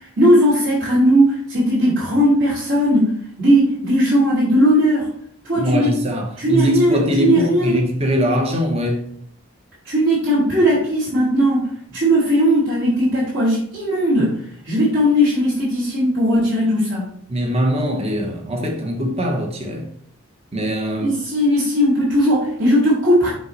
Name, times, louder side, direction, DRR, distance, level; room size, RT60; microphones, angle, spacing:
voice 1, 0.2-3.1 3.4-5.1 5.4-6.0 6.4-7.8 9.8-11.7 11.9-14.4 14.6-17.1 21.0-23.3, equal, 60° right, 2.5 m, -17 dB
voice 2, 5.5-9.1 17.3-19.9 20.5-21.2, equal, 30° right, 0.9 m, -21 dB
6.2 x 5.3 x 3.1 m
head